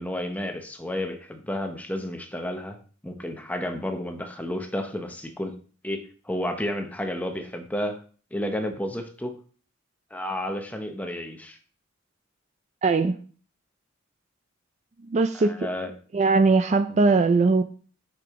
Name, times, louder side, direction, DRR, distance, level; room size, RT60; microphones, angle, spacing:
voice 1, 0.0-2.8 3.0-5.6 5.8-8.0 8.3-9.3 10.1-11.6 15.4-15.9 16.9-17.0, left 1 dB, 10° left, 0.8 m, -31 dB
voice 2, 12.8-13.2 15.1-15.6 16.1-17.6, right 3 dB, 35° right, 0.3 m, -20 dB
6.0 x 6.0 x 3.6 m
head